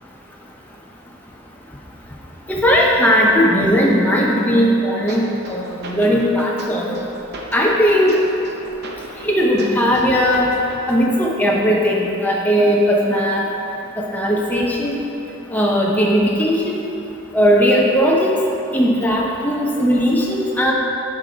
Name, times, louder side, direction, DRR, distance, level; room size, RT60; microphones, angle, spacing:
voice 1, 2.5-6.9 7.5-8.2 9.2-10.5 10.9-13.4 14.0-15.0 15.5-16.8 17.3-18.4 18.7-20.7, equal, 10° left, -3 dB, 0.5 m, -17 dB
sound 1, 5.1-11.1, right 1 dB, 45° right, 0.7 m, -37 dB
9.8 x 5.1 x 3.8 m, 3.0 s
head